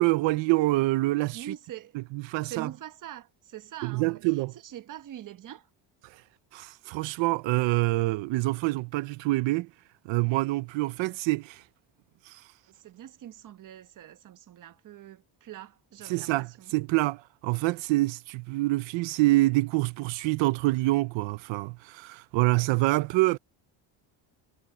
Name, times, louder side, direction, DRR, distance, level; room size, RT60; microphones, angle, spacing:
voice 1, 0.0-1.6 1.9-2.7 3.8-4.5 6.0-6.2 6.5-9.7 10.0-11.6 12.2-12.5 16.0-23.4, right 20 dB, 85° right, 0.9 m, -26 dB
voice 2, 1.3-2.0 2.5-4.2 4.6-5.7 12.8-16.7, right 11 dB, 45° right, 1.2 m, -43 dB
cardioid pair, 140°, 44 cm